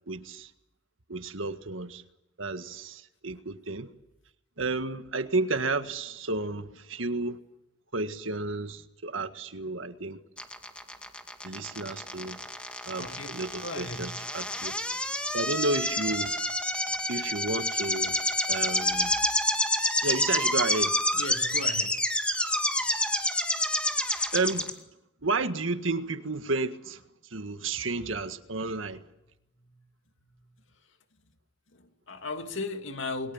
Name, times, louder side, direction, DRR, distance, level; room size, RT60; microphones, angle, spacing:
voice 1, 0.1-0.5 1.1-2.0 2.4-3.9 4.6-7.4 7.9-10.2 11.4-12.4 12.9-14.7 15.3-16.4 17.1-18.2 18.5-19.2 20.0-20.9 24.3-24.8 25.2-27.0 27.3-29.1, right 3 dB, 85° right, 1.7 m, -32 dB
sound 1, 10.4-24.7, left 1 dB, 5° left, 2.2 m, -28 dB
voice 2, 12.9-14.1 14.9-15.0 18.9-19.2 21.1-22.0 29.6-29.8 30.2-30.5 31.7-33.3, left 2 dB, 75° left, 2.5 m, -38 dB
29.5 x 22.0 x 7.3 m
head